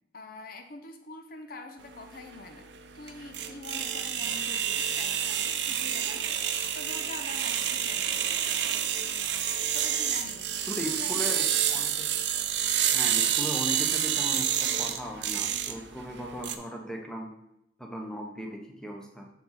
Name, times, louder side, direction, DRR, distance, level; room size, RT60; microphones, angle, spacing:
voice 1, 0.1-2.7 2.9-8.4 9.7-11.5, left 3 dB, 55° left, 5 dB, 0.7 m, -45 dB
sound 1, 1.8-16.5, right 9 dB, 75° right, 0.6 m, -29 dB
voice 2, 10.6-12.0 12.9-17.3 17.8-19.3, equal, 5° left, 1 dB, 0.9 m, -37 dB
7.1 x 4.6 x 4.0 m, 0.81 s
head